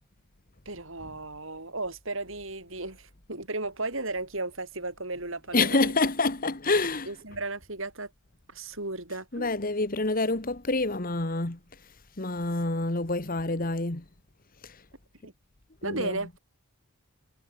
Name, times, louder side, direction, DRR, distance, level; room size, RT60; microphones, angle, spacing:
voice 1, 0.7-5.8 7.1-8.1 8.5-9.6 15.2-15.3 15.8-16.4, right 2 dB, 60° right, 7.1 m, -35 dB
voice 2, 5.5-7.1 9.3-11.6 12.2-14.0 14.6-14.8 15.8-16.2, left 3 dB, 40° left, 1.6 m, -27 dB
head